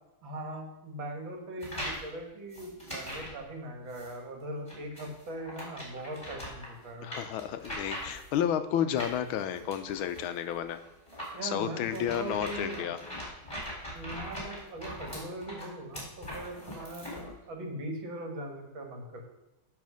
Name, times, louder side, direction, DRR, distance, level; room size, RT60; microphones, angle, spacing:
voice 1, 0.2-7.1 11.3-13.0 13.9-19.2, right 1 dB, 65° right, 2 dB, 2.2 m, -40 dB
sound 1, 1.6-2.1 2.5-3.4 3.9-4.1 4.7-8.4 9.0-17.3, equal, 15° left, 3.4 m, -41 dB
voice 2, 7.0-10.8 11.4-13.0, left 9 dB, 80° left, 10 dB, 1.4 m, -31 dB
10.5 x 4.3 x 6.2 m, 0.94 s
omnidirectional pair, 2.3 m